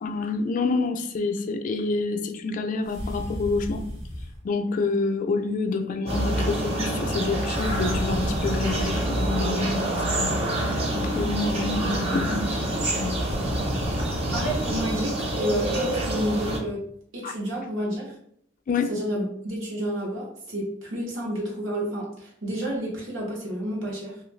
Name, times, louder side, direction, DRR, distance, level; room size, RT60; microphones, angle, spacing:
voice 1, 0.0-3.9 4.4-9.9 10.2-10.4 10.9-13.1 17.2-17.3 18.7-18.9, left 3 dB, 45° left, 6 dB, 0.3 m, -27 dB
sound 1, 2.8-4.4 7.5-9.3 13.2-14.8, equal, 60° right, 1.2 m, -32 dB
sound 2, 6.1-16.6, right 1 dB, 30° right, 0.6 m, -27 dB
voice 2, 14.3-16.9 17.1-18.1 18.9-24.2, equal, 80° right, -4 dB, 0.9 m, -30 dB
2.5 x 2.4 x 3.1 m, 0.67 s
head